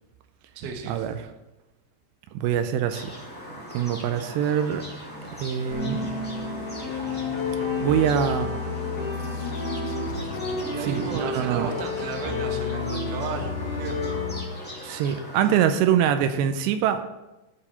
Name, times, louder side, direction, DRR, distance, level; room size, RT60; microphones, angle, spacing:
voice 1, 0.6-1.1 10.5-14.3 15.4-15.9, right 5 dB, 60° right, 2 dB, 2.3 m, -35 dB
voice 2, 2.3-3.1 3.7-4.8 5.4-6.0 7.8-8.5 10.9-11.7 14.8-17.1, right 9 dB, 90° right, 9 dB, 2.8 m, -24 dB
sound 1, 2.9-15.7, equal, 10° left, 0.5 m, -39 dB
sound 2, 5.7-14.5, left 4 dB, 50° left, 1.9 m, -30 dB
sound 3, 8.4-11.3, left 6 dB, 75° left, 2.9 m, -41 dB
14.0 x 4.9 x 5.6 m, 1.0 s
omnidirectional pair, 5.0 m